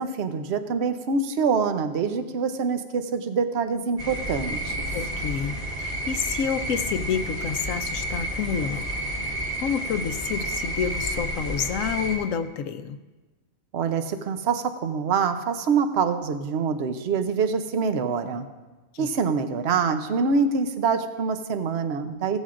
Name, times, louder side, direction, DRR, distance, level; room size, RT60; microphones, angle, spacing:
voice 1, 0.0-4.9 13.7-18.4 19.0-22.4, right 5 dB, 55° right, 9 dB, 0.9 m, -25 dB
sound 1, 4.0-12.2, right 1 dB, 40° right, 2.4 m, -30 dB
voice 2, 4.9-9.0 9.6-13.0 18.9-19.1, left 7 dB, 70° left, 11 dB, 1.0 m, -29 dB
16.0 x 13.5 x 2.5 m, 1.2 s
omnidirectional pair, 1.5 m